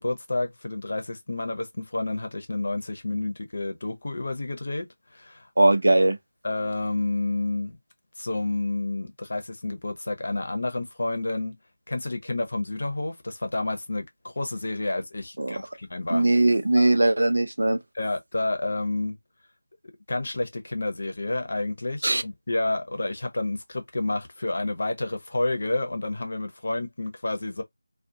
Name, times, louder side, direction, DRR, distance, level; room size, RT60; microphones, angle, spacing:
voice 1, 0.0-4.9 5.1-5.5 6.4-7.8 8.2-11.6 11.9-14.1 14.4-16.3 16.7-16.9 17.9-19.2 20.1-27.6, left 2 dB, 60° left, 0.8 m, -29 dB
voice 2, 5.6-6.2 15.4-15.6 16.1-17.8 22.0-22.2, right 2 dB, 75° right, 0.5 m, -20 dB
2.5 x 2.3 x 2.7 m
figure-of-eight pair, 170°, 0 cm